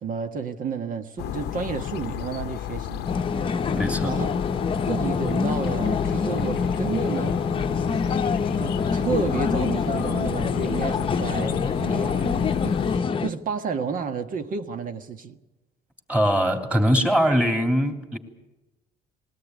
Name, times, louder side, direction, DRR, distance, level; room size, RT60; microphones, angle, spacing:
voice 1, 0.0-3.1 4.0-4.3 4.9-7.4 8.6-15.4, right 6 dB, 55° right, 1.6 m, -31 dB
sound 1, 1.2-13.0, left 12 dB, 75° left, 0.7 m, -32 dB
sound 2, 3.0-13.3, left 5 dB, 30° left, 0.9 m, -26 dB
voice 2, 3.7-4.2 16.1-18.2, equal, 5° right, 3.2 m, -22 dB
21.0 x 17.5 x 9.5 m
cardioid pair, 110°, 17 cm